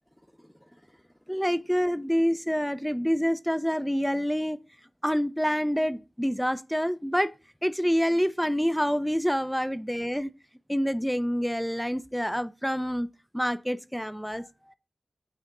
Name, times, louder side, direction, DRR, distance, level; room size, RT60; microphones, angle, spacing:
voice 1, 1.3-4.6 5.0-7.3 7.6-10.3 10.7-13.1 13.3-14.5, equal, ahead, 0.5 m, -27 dB
9.0 x 4.2 x 3.7 m
wide cardioid pair, 95°, 0 cm